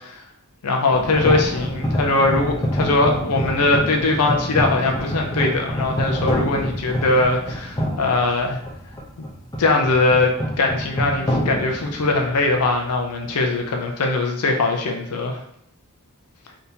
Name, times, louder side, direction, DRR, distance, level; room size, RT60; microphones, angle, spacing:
voice 1, 0.6-8.6 9.6-15.4, left 2 dB, 80° left, 3 dB, 0.5 m, -21 dB
sound 1, 0.9-12.8, equal, 15° left, 0.7 m, -26 dB
3.4 x 2.8 x 2.7 m, 0.70 s
head